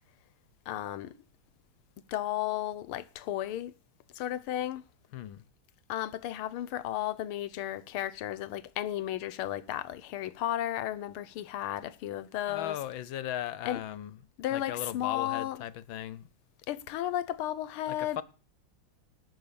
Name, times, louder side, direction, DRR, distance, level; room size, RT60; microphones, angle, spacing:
voice 1, 0.7-1.2 2.1-3.7 4.2-4.8 5.9-12.8 13.7-13.8 14.4-15.6 16.7-18.2, left 12 dB, 85° left, 1.7 m, -34 dB
voice 2, 5.1-5.4 12.5-14.2 14.5-16.3 17.9-18.2, left 11 dB, 70° left, 1.6 m, -37 dB
19.0 x 7.2 x 6.9 m
omnidirectional pair, 2.3 m